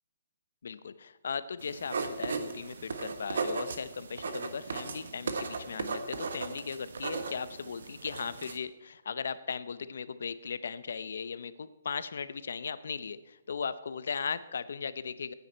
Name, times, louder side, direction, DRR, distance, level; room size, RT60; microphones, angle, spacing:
voice 1, 0.6-15.3, left 6 dB, 70° left, 14 dB, 0.7 m, -37 dB
sound 1, 1.6-8.6, right 4 dB, 70° right, 1.3 m, -37 dB
14.0 x 9.5 x 4.4 m, 1.0 s
hypercardioid pair, 165°, 0 cm